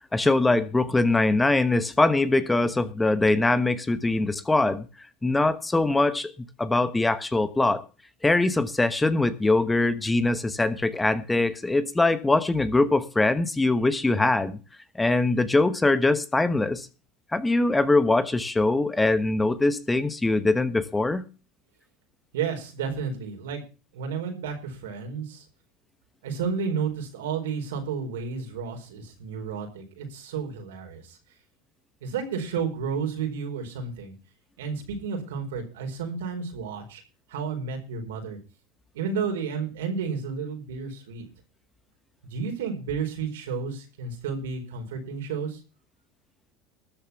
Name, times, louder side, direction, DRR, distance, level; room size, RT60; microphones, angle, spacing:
voice 1, 0.1-4.8 5.2-6.3 6.6-7.8 8.2-14.6 14.9-16.9 17.3-21.2, left 2 dB, 10° left, 1.1 m, -22 dB
voice 2, 22.3-23.6 23.9-25.4 26.2-31.2 32.0-34.1 34.6-37.0 37.3-38.4 38.9-41.2 42.2-45.6, right 6 dB, 90° right, 4.5 m, -32 dB
13.0 x 7.2 x 7.1 m
supercardioid pair, 110°, 0 cm